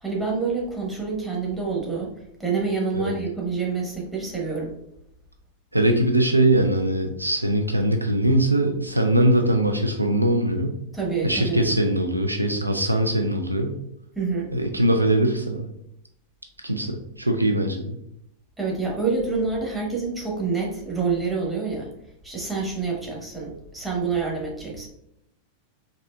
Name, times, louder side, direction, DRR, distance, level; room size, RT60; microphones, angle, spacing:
voice 1, 0.0-2.1 2.4-4.8 10.9-11.6 14.1-14.5 18.6-21.9 22.2-24.9, right 4 dB, 10° right, -3 dB, 1.0 m, -27 dB
voice 2, 5.7-10.7 11.2-13.7 14.5-15.7 16.6-18.0, right 1 dB, 85° right, 5 dB, 0.3 m, -21 dB
4.0 x 2.5 x 2.3 m, 0.77 s
figure-of-eight pair, 90°, 0 cm